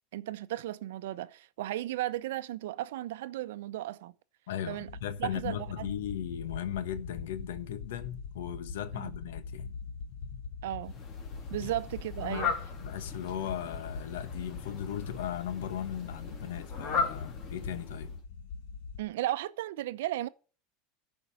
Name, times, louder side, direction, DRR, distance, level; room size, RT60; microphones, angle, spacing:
voice 1, 0.1-4.1 4.7-4.9 5.2-5.9 8.9-9.1 10.6-10.9 11.5-12.5 19.0-20.3, right 14 dB, 80° right, 0.7 m, -35 dB
voice 2, 4.5-9.7 11.6-11.7 12.2-12.5 12.8-18.1, left 10 dB, 90° left, 1.2 m, -37 dB
sound 1, 4.9-19.0, left 5 dB, 65° left, 1.6 m, -43 dB
Fowl, 10.8-18.2, left 5 dB, 35° left, 2.7 m, -38 dB
14.0 x 5.3 x 7.0 m
supercardioid pair, 135°, 0 cm